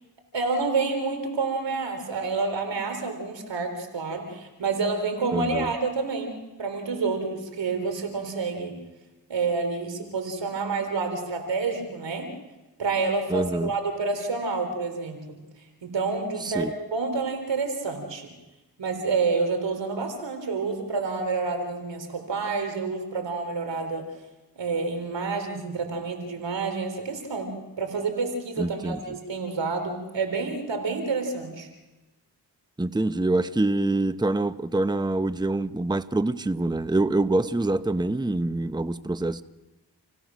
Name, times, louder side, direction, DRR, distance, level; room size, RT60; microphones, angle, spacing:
voice 1, 0.3-8.7 9.3-12.3 12.8-15.4 15.8-18.3 18.8-24.1 24.6-31.7, right 4 dB, 90° right, 6 dB, 3.8 m, -28 dB
voice 2, 5.3-5.7 13.3-13.7 16.4-16.7 28.6-29.0 32.8-39.4, right 2 dB, 10° right, 12 dB, 0.9 m, -25 dB
29.5 x 17.0 x 6.3 m, 1.1 s
cardioid pair, 45°, 42 cm